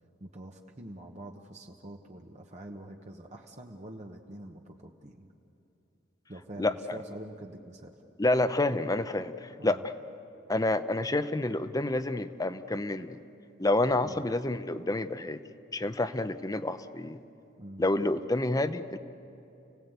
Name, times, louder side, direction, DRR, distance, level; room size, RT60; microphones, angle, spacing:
voice 1, 0.2-5.3 6.3-7.9 9.6-9.8 14.0-14.2 17.6-18.2, right 1 dB, 40° right, 1 dB, 1.1 m, -45 dB
voice 2, 6.6-7.0 8.2-9.9 10.5-13.2 13.6-15.4 15.7-17.2 17.8-19.0, left 2 dB, 20° left, 11 dB, 0.7 m, -28 dB
30.0 x 18.0 x 8.1 m, 2.8 s
head